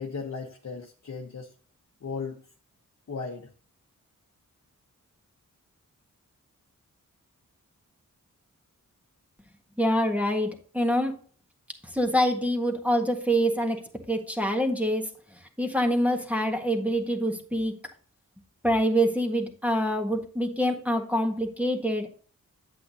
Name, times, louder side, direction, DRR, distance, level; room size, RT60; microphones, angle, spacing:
voice 1, 0.0-1.5 2.0-2.4 3.1-3.5, left 5 dB, 55° left, 1 dB, 1.0 m, -36 dB
voice 2, 9.8-11.1 11.9-13.8 14.1-15.1 15.6-17.7 18.6-22.1, equal, 5° right, 3 dB, 1.5 m, -25 dB
8.3 x 8.2 x 2.8 m, 0.41 s
cardioid pair, 60°, 32 cm